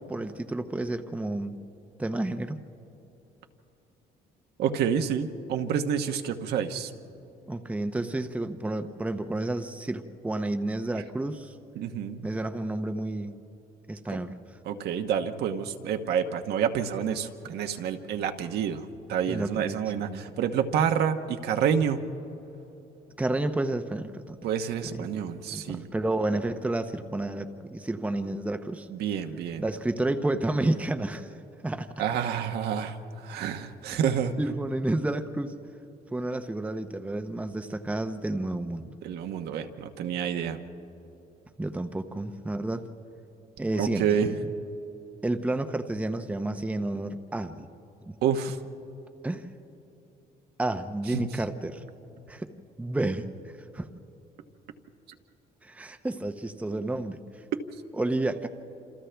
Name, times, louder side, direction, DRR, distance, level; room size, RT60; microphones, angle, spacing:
voice 1, 0.0-1.6 2.0-2.6 7.5-11.5 12.2-13.4 13.9-14.3 17.0-17.2 19.3-19.8 20.1-20.2 23.2-24.4 24.9-25.1 25.5-28.9 29.6-31.3 31.6-31.9 33.9-34.0 34.4-35.5 36.1-39.0 41.6-42.9 43.6-44.4 45.2-47.7 48.1-48.2 49.2-49.4 50.6-51.8 52.3-52.5 52.8-53.2 53.7-53.9 55.6-57.2 58.0-58.5, right 2 dB, 10° right, 7 dB, 0.8 m, -30 dB
voice 2, 4.6-6.9 11.8-12.2 14.7-22.0 24.4-25.9 28.9-29.6 32.0-34.3 39.0-40.6 43.8-44.3 48.2-48.6 51.1-51.2, right 8 dB, 75° right, 6 dB, 1.2 m, -28 dB
28.0 x 27.5 x 3.4 m, 3.0 s
cardioid pair, 110°, 17 cm